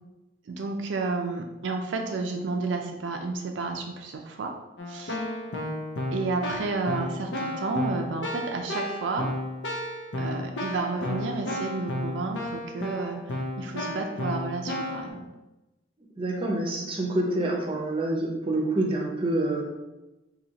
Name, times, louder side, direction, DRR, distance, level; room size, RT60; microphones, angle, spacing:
voice 1, 0.5-4.5 4.9-5.3 6.1-9.3 10.2-15.3, right 3 dB, 80° right, 3 dB, 0.4 m, -31 dB
Keyboard (musical), 4.8-15.1, left 1 dB, 70° left, 0.6 m, -33 dB
voice 2, 16.2-19.6, right 2 dB, 30° right, 0 dB, 0.7 m, -27 dB
4.1 x 2.7 x 2.8 m, 1.0 s
head